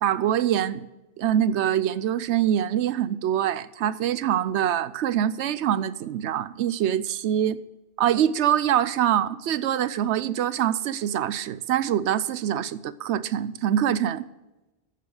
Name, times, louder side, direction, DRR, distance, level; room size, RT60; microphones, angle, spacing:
voice 1, 0.0-0.9 1.2-7.6 8.0-14.2, right 10 dB, 80° right, 16 dB, 0.9 m, -24 dB
14.5 x 7.0 x 4.8 m, 1.0 s
omnidirectional pair, 1.2 m